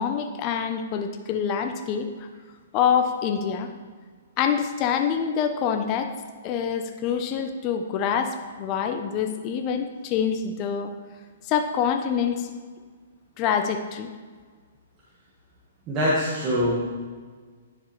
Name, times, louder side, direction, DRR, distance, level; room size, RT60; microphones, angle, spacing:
voice 1, 0.0-2.1 2.7-3.7 4.4-6.1 6.4-10.9 11.5-12.5 13.4-14.1, left 7 dB, 35° left, 6 dB, 0.7 m, -26 dB
voice 2, 15.9-16.7, equal, 25° right, -7 dB, 1.7 m, -23 dB
10.5 x 6.8 x 3.2 m, 1.5 s
hypercardioid pair, 140°, 0 cm